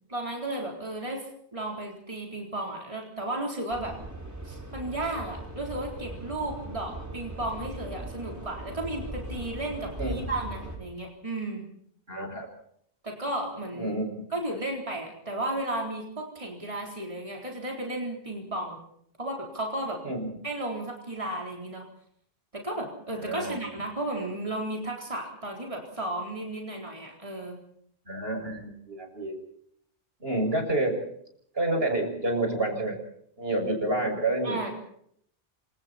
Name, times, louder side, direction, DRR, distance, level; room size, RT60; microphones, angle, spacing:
voice 1, 0.1-1.2 1.5-4.0 4.4-11.6 13.0-14.0 14.3-18.8 19.2-20.1 20.4-21.8 22.5-27.6 34.4-34.7, right 1 dB, 30° right, 0 dB, 4.3 m, -34 dB
sound 1, 3.7-10.8, right 1 dB, 15° right, 5.1 m, -39 dB
voice 2, 12.1-12.5 13.7-14.2 20.0-20.3 23.2-23.6 28.1-29.3 30.2-31.0 31.5-33.0 33.4-34.6, right 2 dB, 75° right, 3 dB, 6.9 m, -28 dB
28.5 x 26.5 x 4.4 m, 0.68 s
omnidirectional pair, 1.0 m